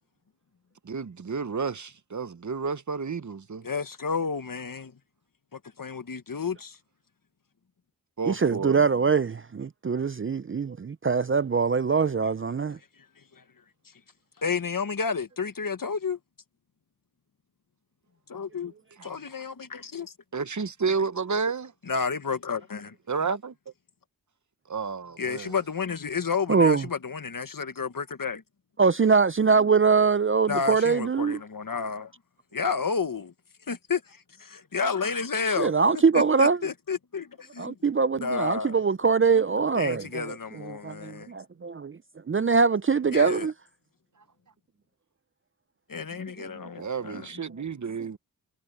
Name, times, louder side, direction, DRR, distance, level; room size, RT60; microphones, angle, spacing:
voice 1, 0.8-3.7 8.2-8.8 19.0-19.1 20.3-21.7 23.1-23.5 24.7-25.5 46.8-48.2, right 5 dB, 50° right, 0.9 m, -31 dB
voice 2, 3.6-4.9 5.5-6.8 13.3-13.4 14.4-16.2 18.3-18.7 19.0-20.1 21.9-22.9 25.2-28.4 30.5-32.1 32.5-33.3 33.7-35.7 36.1-37.8 38.2-38.8 39.8-41.3 43.1-43.5 45.9-47.3, left 5 dB, 60° left, 1.4 m, -31 dB
voice 3, 8.3-12.8 26.5-26.8 28.8-31.4 35.6-36.6 37.6-42.0 42.3-43.5 46.4-46.5, right 5 dB, 35° right, 0.5 m, -23 dB
cardioid pair, 50°, 38 cm